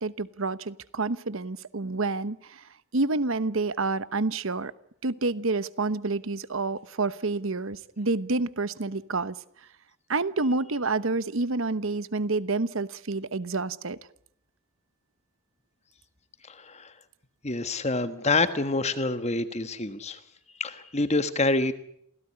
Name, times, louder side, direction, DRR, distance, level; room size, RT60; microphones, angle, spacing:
voice 1, 0.0-2.6 2.9-4.7 5.0-9.3 10.1-14.0, right 3 dB, 60° right, 16 dB, 1.0 m, -28 dB
voice 2, 16.5-16.9 17.4-20.2 20.6-21.7, left 3 dB, 30° left, 11 dB, 1.4 m, -27 dB
28.0 x 17.0 x 9.8 m, 0.72 s
head